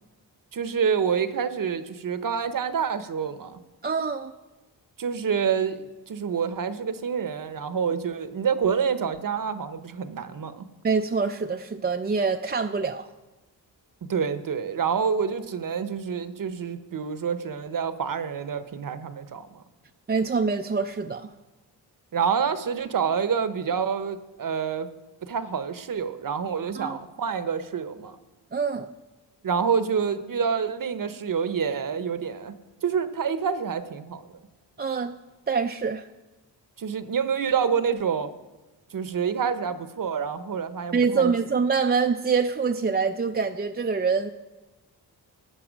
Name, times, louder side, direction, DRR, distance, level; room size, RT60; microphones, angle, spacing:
voice 1, 0.5-3.6 5.0-10.6 14.1-19.6 22.1-24.9 25.2-28.2 29.4-32.5 32.8-34.2 36.8-38.3 38.9-41.3, right 6 dB, 50° right, 11 dB, 0.9 m, -27 dB
voice 2, 3.8-4.3 10.8-13.1 20.1-21.3 26.8-27.0 28.5-28.9 34.8-35.2 35.5-36.1 40.9-44.3, right 5 dB, 25° right, 5 dB, 0.4 m, -25 dB
13.5 x 8.4 x 5.1 m, 1.1 s
cardioid pair, 80°, 41 cm